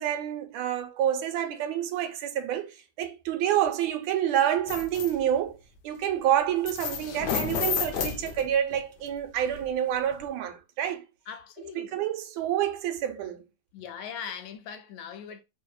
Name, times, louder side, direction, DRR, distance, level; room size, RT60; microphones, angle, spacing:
voice 1, 0.0-5.6 5.8-11.0 11.7-13.4, right 10 dB, 80° right, 1.3 m, -28 dB
sound 1, 4.7-5.1 6.7-8.8 9.5-9.6 10.1-10.2, left 7 dB, 70° left, 1.0 m, -31 dB
voice 2, 11.3-11.9 13.7-15.4, left 7 dB, 90° left, 1.4 m, -40 dB
3.1 x 2.7 x 2.2 m
omnidirectional pair, 2.2 m